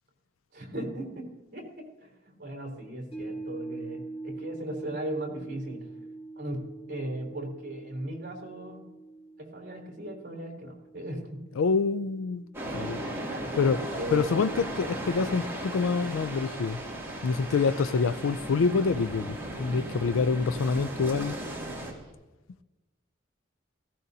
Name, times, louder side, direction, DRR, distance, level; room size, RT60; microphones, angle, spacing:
voice 1, 0.5-5.9 6.4-6.6 6.9-8.8 9.4-11.4 13.2-13.5 13.9-14.2, right 1 dB, 45° right, 3.5 m, -37 dB
sound 1, 3.1-13.5 13.9-14.0, right 2 dB, 30° left, 4.2 m, -44 dB
voice 2, 11.6-12.4 12.7-13.0 13.6-13.8 14.1-16.8 17.2-21.3, left 5 dB, 85° left, 0.4 m, -26 dB
sound 2, 12.5-21.9, right 1 dB, 15° right, 2.6 m, -36 dB
sound 3, 13.4-22.1, right 1 dB, 30° right, 3.5 m, -51 dB
18.0 x 15.0 x 2.8 m
head